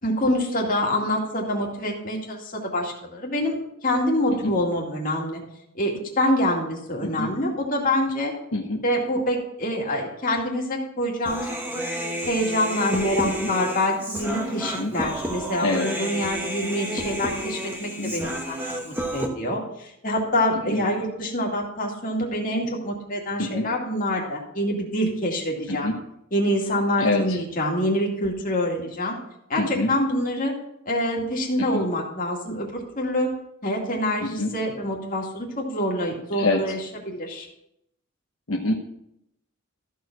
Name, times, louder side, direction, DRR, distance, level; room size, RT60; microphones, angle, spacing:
voice 1, 0.0-3.6 3.8-5.4 5.8-8.3 8.8-11.5 12.3-18.6 18.8-25.9 26.3-29.2 29.5-30.5 30.9-33.3 33.6-37.5, left 1 dB, 40° left, -1 dB, 2.2 m, -26 dB
Human voice, 11.2-19.3, equal, 10° right, 1.3 m, -31 dB
voice 2, 29.6-29.9 31.6-31.8 34.2-34.5 36.4-36.6 38.5-38.7, left 2 dB, 70° left, 0 dB, 1.1 m, -25 dB
14.0 x 4.7 x 6.1 m, 0.79 s
head